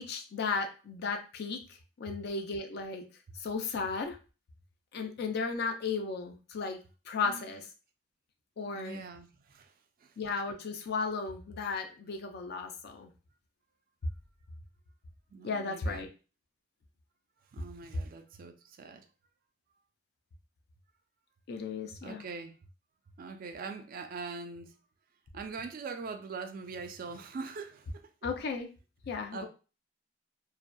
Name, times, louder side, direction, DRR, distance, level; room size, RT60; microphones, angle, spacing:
voice 1, 0.0-3.0 3.3-4.2 4.9-6.8 7.1-7.7 8.6-9.0 10.2-13.1 15.4-16.1 21.5-22.3 28.2-28.7 29.0-29.5, left 4 dB, 60° left, 0.4 m, -35 dB
voice 2, 8.7-9.7 10.0-10.1 15.3-16.1 17.5-19.1 22.0-22.6 23.2-24.8 25.3-28.0 29.3-29.5, right 4 dB, 50° right, 0.3 m, -42 dB
2.6 x 2.1 x 2.2 m
head